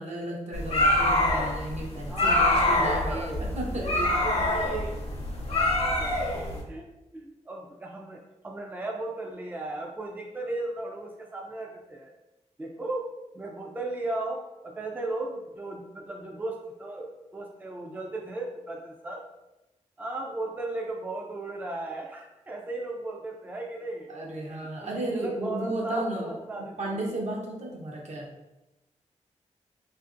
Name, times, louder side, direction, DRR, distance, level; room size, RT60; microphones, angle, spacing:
voice 1, 0.0-4.8 24.1-28.3, right 1 dB, 65° right, -2 dB, 0.7 m, -34 dB
sound 1, 0.5-6.6, left 1 dB, 55° left, 0.6 m, -25 dB
voice 2, 2.1-3.5 4.0-5.0 5.5-6.3 6.6-12.1 12.6-13.1 13.3-19.2 20.0-24.1 24.4-27.1, right 2 dB, 15° right, 0 dB, 0.3 m, -36 dB
2.8 x 2.5 x 2.4 m, 0.98 s
wide cardioid pair, 85°, 13 cm